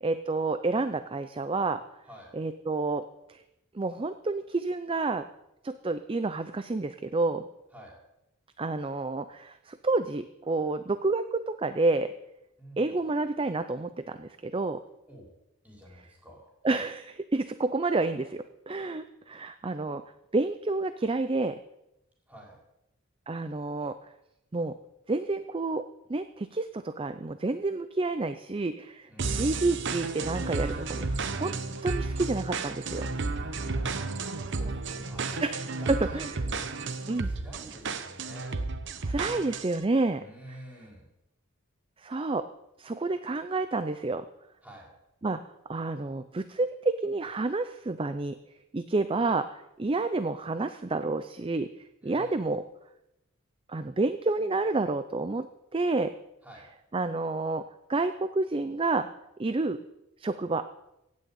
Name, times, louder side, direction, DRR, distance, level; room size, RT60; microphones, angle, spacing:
voice 1, 0.0-1.8 2.3-3.4 3.7-5.2 5.6-7.5 8.6-12.1 12.8-14.8 16.6-20.0 20.3-21.6 23.3-24.0 24.5-24.8 25.1-31.5 31.8-33.1 35.4-36.3 37.1-37.3 39.0-40.2 42.0-42.5 42.8-44.3 45.2-45.4 45.7-48.4 48.7-51.7 52.0-52.6 53.7-55.5 55.7-56.1 56.9-57.6 57.9-59.1 59.4-59.8 60.2-60.7, right 3 dB, 25° right, 11 dB, 0.5 m, -29 dB
voice 2, 2.0-2.4 7.7-8.0 12.6-13.0 15.1-15.3 15.6-16.5 22.3-22.6 29.1-29.8 33.5-35.5 35.8-38.5 40.1-41.1 44.6-44.9 52.0-52.5 56.4-56.6, equal, 5° right, -3 dB, 4.3 m, -49 dB
sound 1, 29.2-39.8, right 3 dB, 55° right, 0.9 m, -32 dB
16.0 x 6.4 x 8.7 m, 0.88 s
head